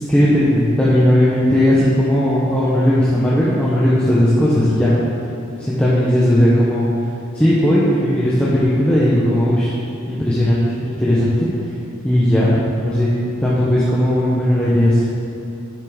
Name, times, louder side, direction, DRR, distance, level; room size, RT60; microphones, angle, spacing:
voice 1, 0.1-5.0 5.6-6.9 7.3-9.7 10.1-11.5 12.0-13.1 13.4-15.0, equal, 5° left, -9 dB, 0.9 m, -16 dB
8.6 x 5.6 x 4.9 m, 2.8 s
head